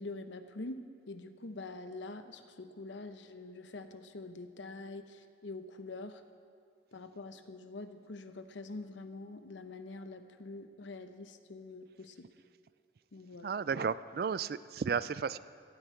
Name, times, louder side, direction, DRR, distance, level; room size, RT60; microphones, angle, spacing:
voice 1, 0.0-6.2 6.9-12.3 13.1-13.5, left 2 dB, 80° left, 9 dB, 0.8 m, -45 dB
voice 2, 13.4-15.4, right 6 dB, 55° right, 16 dB, 0.3 m, -33 dB
17.0 x 12.5 x 4.6 m, 2.2 s
head